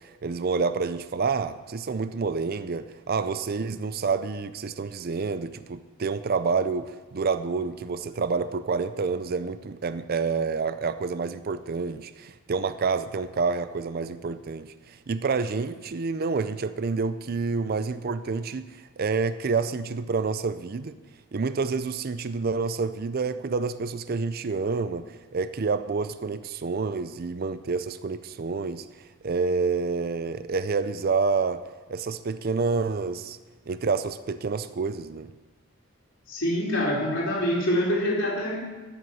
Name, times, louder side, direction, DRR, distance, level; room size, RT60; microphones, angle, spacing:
voice 1, 0.0-21.0 21.3-28.8 29.2-31.6 31.9-33.4 33.7-35.3, right 4 dB, 45° right, 12 dB, 0.4 m, -28 dB
voice 2, 36.3-38.6, equal, 65° left, -6 dB, 3.3 m, -25 dB
11.0 x 7.9 x 7.0 m, 1.3 s
head